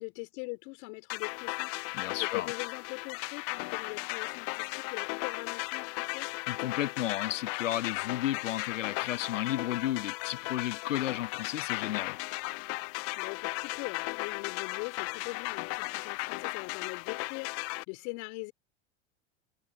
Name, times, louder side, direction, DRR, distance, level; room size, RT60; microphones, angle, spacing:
voice 1, 0.0-6.3 13.2-18.5, left 33 dB, 55° left, 3.4 m, -41 dB
sound 1, 1.1-17.8, left 28 dB, 40° left, 0.5 m, -36 dB
voice 2, 1.9-2.5 6.5-12.2, left 12 dB, 80° left, 1.3 m, -33 dB
hypercardioid pair, 100°, 37 cm